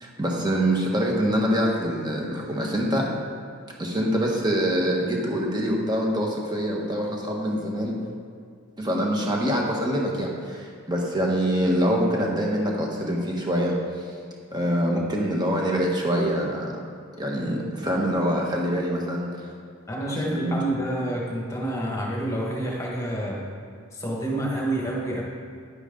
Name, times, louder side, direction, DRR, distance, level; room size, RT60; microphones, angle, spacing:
voice 1, 0.0-3.1 3.8-8.0 8.8-14.1 14.5-16.7 17.2-19.3 20.1-20.6, equal, 20° right, -1 dB, 1.3 m, -25 dB
voice 2, 19.9-23.4 23.9-25.2, right 1 dB, 15° left, -3 dB, 1.6 m, -28 dB
9.9 x 9.6 x 3.9 m, 2.2 s
head